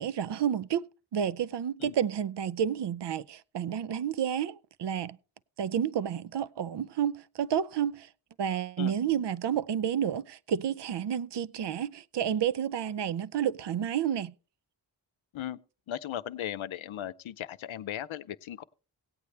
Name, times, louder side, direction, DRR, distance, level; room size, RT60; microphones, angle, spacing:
voice 1, 0.0-5.2 5.6-8.1 8.4-14.3, right 9 dB, 60° right, 0.5 m, -30 dB
voice 2, 15.9-18.6, left 11 dB, 80° left, 0.6 m, -37 dB
17.5 x 8.3 x 3.3 m
cardioid pair, 45°, 48 cm